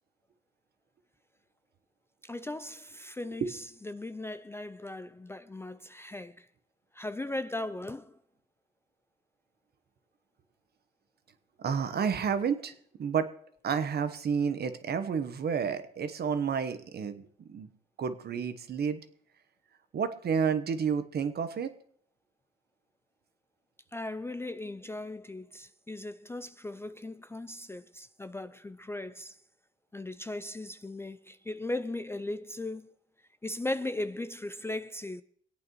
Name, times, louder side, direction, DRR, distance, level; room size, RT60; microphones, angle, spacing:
voice 1, 2.2-6.5 6.9-8.2 23.9-29.4 29.9-32.9 33.4-35.2, left 2 dB, 10° left, 0.4 m, -38 dB
voice 2, 11.6-13.3 13.6-17.7 18.0-19.0 19.9-21.7, right 6 dB, 55° right, 1.1 m, -30 dB
25.5 x 8.6 x 3.1 m
cardioid pair, 90°, 20 cm